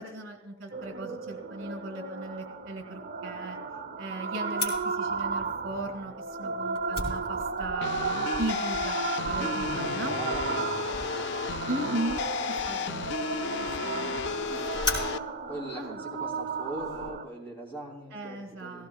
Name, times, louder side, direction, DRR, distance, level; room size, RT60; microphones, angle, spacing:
voice 1, 0.0-3.6 4.0-6.1 6.4-7.9 8.4-10.2 11.7-12.2 12.7-14.1 15.7-16.0 18.1-18.9, right 2 dB, 75° right, 5 dB, 1.9 m, -37 dB
sound 1, 0.7-17.2, right 4 dB, 50° right, 0.8 m, -34 dB
Fire, 4.6-17.1, left 2 dB, 30° left, 3.5 m, -40 dB
sound 2, 7.8-15.2, left 6 dB, 55° left, 0.3 m, -33 dB
voice 2, 9.3-9.7 10.1-11.1 14.0-15.1 15.5-18.9, right 1 dB, 10° left, -3 dB, 3.0 m, -42 dB
16.5 x 16.0 x 2.3 m, 1.1 s
head